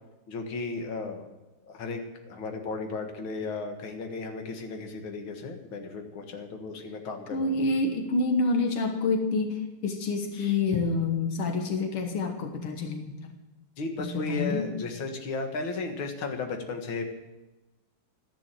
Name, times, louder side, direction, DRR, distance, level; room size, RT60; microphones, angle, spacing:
voice 1, 0.3-1.3 1.7-2.0 2.3-7.5 10.3-10.6 13.8-17.0, left 3 dB, 65° left, 4 dB, 2.4 m, -35 dB
voice 2, 7.3-9.6 9.8-13.3 14.0-14.6, left 3 dB, 85° left, 4 dB, 2.3 m, -27 dB
13.5 x 10.5 x 7.6 m, 1.1 s
omnidirectional pair, 2.4 m